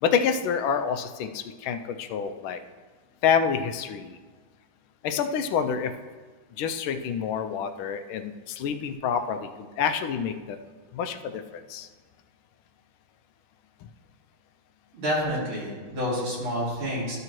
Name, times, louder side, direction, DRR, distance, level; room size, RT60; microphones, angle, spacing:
voice 1, 0.0-2.6 3.2-4.2 5.0-5.9 6.6-10.6 10.9-11.9, left 7 dB, 80° left, 8 dB, 1.4 m, -27 dB
voice 2, 14.9-17.2, equal, 75° right, -7 dB, 3.5 m, -28 dB
13.0 x 6.7 x 3.0 m, 1.4 s
omnidirectional pair, 2.3 m